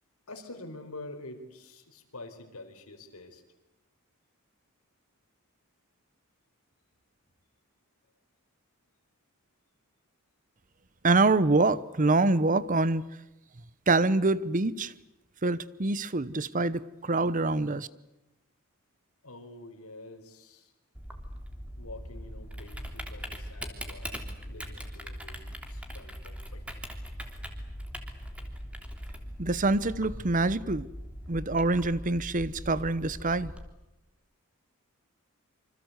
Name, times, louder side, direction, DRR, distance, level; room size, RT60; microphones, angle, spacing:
voice 1, 0.3-3.4 19.2-20.7 21.8-26.6 28.4-28.5, left 2 dB, 85° left, 4.6 m, -47 dB
voice 2, 11.0-13.0 13.9-14.9 15.4-17.9 29.4-30.9 31.3-33.5, right 2 dB, 35° right, 0.9 m, -25 dB
Typing, 20.9-33.6, equal, 5° right, 3.1 m, -41 dB
27.0 x 25.5 x 8.1 m
head